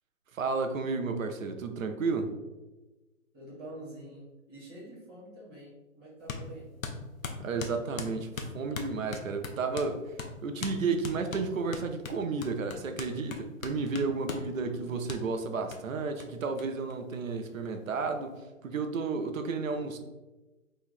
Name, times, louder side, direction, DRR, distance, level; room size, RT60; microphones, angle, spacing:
voice 1, 0.3-2.3 7.4-10.1 10.4-20.0, right 4 dB, 80° right, 6 dB, 0.6 m, -32 dB
voice 2, 3.3-6.7 14.5-15.1 19.8-20.0, right 1 dB, 5° right, -13 dB, 0.6 m, -47 dB
sound 1, 6.3-6.5 6.8-9.9 10.2-10.3 10.6-10.8 11.0-14.5 15.1-15.2 15.7-15.8 16.2-16.3 16.6-16.7 16.9-17.6, left 5 dB, 85° left, 0.7 m, -39 dB
3.1 x 2.7 x 3.9 m, 1.1 s
hypercardioid pair, 155°, 39 cm